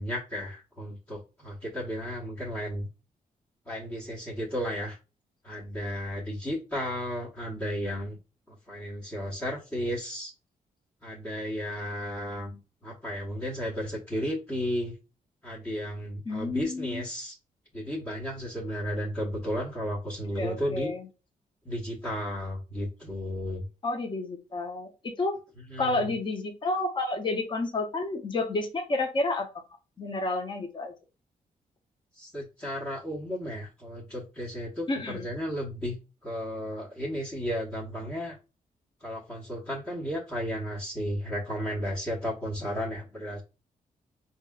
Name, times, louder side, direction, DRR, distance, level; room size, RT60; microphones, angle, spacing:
voice 1, 0.0-2.9 3.7-5.0 5.4-8.2 8.5-10.3 11.0-14.9 15.4-17.4 17.7-20.9 21.6-23.7 25.7-26.1 32.1-35.9 36.2-38.4 39.0-43.4, equal, 15° left, -6 dB, 1.1 m, -34 dB
voice 2, 16.3-17.0 20.4-21.0 23.8-25.4 25.8-29.5 30.0-30.9 34.9-35.3, left 2 dB, 35° left, 3 dB, 0.7 m, -30 dB
4.6 x 2.8 x 2.3 m, 0.31 s
cardioid pair, 100°, 15 cm